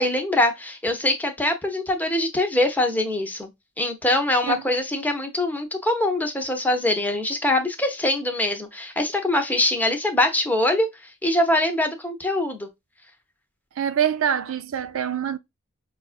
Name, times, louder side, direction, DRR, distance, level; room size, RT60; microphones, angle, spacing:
voice 1, 0.0-3.5 3.8-10.9 11.2-12.7, left 1 dB, 10° left, 0.7 m, -23 dB
voice 2, 13.8-15.4, right 8 dB, 85° right, 0.4 m, -25 dB
5.2 x 2.4 x 2.4 m
head